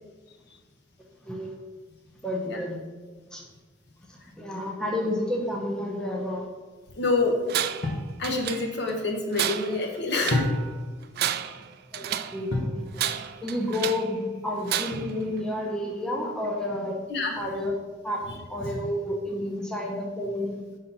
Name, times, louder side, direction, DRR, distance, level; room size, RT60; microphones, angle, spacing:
voice 1, 1.3-1.6 2.2-2.8 3.3-3.5 4.1-6.5 11.9-17.0 17.4-17.8 18.0-20.6, left 1 dB, 5° left, -1 dB, 0.7 m, -31 dB
voice 2, 6.9-7.4 8.2-10.4 17.1-17.4, left 3 dB, 60° left, 1 dB, 1.1 m, -27 dB
Tools, 7.5-7.9 8.2-8.9 9.3-10.5 11.0-12.4 12.9-14.1 14.7-15.2, right 10 dB, 55° right, 0.3 m, -31 dB
sound 1, 7.8-8.1 10.3-10.9 12.5-12.8 14.9-15.4, left 1 dB, 80° left, 1.1 m, -28 dB
5.5 x 4.0 x 5.6 m, 1.4 s
head